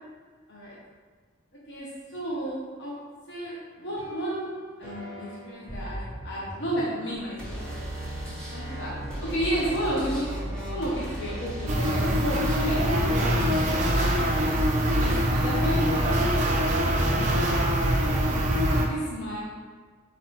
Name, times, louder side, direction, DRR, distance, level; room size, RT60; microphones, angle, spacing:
voice 1, 1.7-3.0 3.3-4.5 4.8-7.8 8.5-8.9 9.2-10.3 10.7-13.8 15.0-16.7 16.9-18.2 18.8-19.7, right 1 dB, 60° left, -5 dB, 0.8 m, -32 dB
sound 1, 3.8-15.2, right 1 dB, 5° left, 1.0 m, -36 dB
sound 2, 11.7-18.9, equal, 35° right, 0.5 m, -23 dB
4.4 x 4.1 x 3.0 m, 1.5 s
head